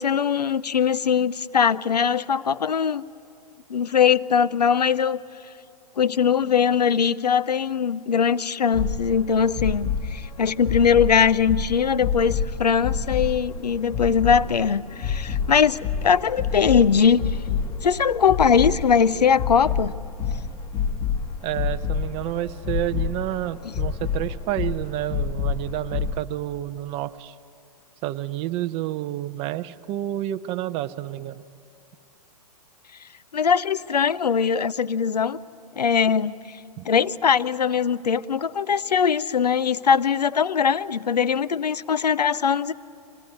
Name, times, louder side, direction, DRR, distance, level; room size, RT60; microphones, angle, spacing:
voice 1, 0.0-3.0 3.7-5.2 6.0-17.2 17.8-19.9 33.3-35.4 35.8-36.3 36.9-42.7, left 7 dB, 85° left, 16 dB, 0.6 m, -21 dB
sound 1, 8.7-26.2, left 6 dB, 20° left, 1.2 m, -28 dB
voice 2, 21.4-27.3 28.0-31.4 36.8-36.9, right 14 dB, 30° right, 12 dB, 0.6 m, -29 dB
23.5 x 18.5 x 9.8 m, 2.5 s
hypercardioid pair, 115°, 20 cm